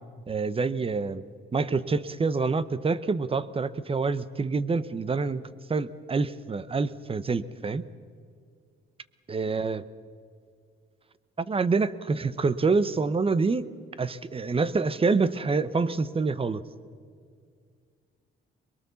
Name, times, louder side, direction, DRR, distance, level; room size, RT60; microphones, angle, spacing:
voice 1, 0.3-1.2 1.5-7.8 9.3-9.8 11.5-13.7 14.0-16.6, right 4 dB, 30° right, 16 dB, 0.9 m, -27 dB
23.0 x 22.0 x 7.1 m, 2.2 s
cardioid pair, 90°, 20 cm